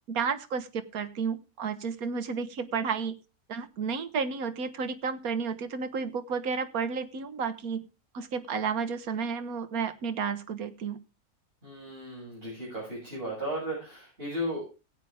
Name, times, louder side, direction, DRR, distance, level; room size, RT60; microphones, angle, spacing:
voice 1, 0.1-3.2 3.5-7.8 8.1-11.0, right 5 dB, 70° right, 10 dB, 1.5 m, -32 dB
voice 2, 11.6-14.6, equal, 40° right, -7 dB, 7.2 m, -35 dB
17.0 x 8.4 x 3.5 m, 0.30 s
omnidirectional pair, 1.6 m